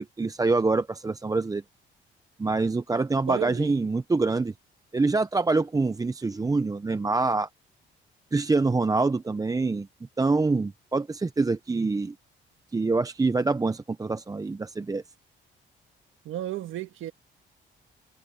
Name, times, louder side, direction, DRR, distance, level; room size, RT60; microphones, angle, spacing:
voice 1, 0.0-1.6 2.4-4.5 4.9-7.5 8.3-9.9 10.2-12.1 12.7-15.0, right 3 dB, 15° right, 0.6 m, -25 dB
voice 2, 3.3-3.7 16.3-17.1, right 12 dB, 80° right, 1.8 m, -33 dB
cardioid pair, 90°, 20 cm